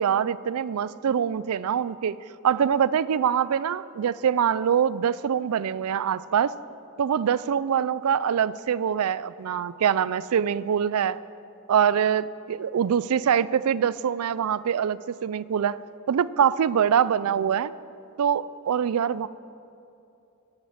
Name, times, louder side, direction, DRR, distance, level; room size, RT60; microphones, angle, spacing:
voice 1, 0.0-2.2 2.4-6.5 7.0-11.2 11.7-15.8 16.1-17.7 18.2-19.3, right 8 dB, 85° right, 18 dB, 0.4 m, -24 dB
11.5 x 8.8 x 8.6 m, 2.7 s
head